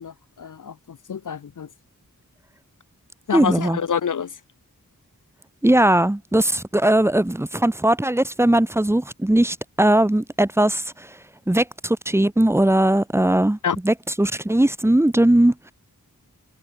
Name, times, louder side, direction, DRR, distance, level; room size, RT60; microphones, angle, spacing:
voice 1, 0.0-1.7 3.3-4.3 13.6-13.8, left 7 dB, 60° left, 0.6 m, -27 dB
voice 2, 3.3-3.8 5.6-11.2 11.5-13.6 13.8-15.7, right 1 dB, 5° right, 0.6 m, -19 dB
wide cardioid pair, 65°, 36 cm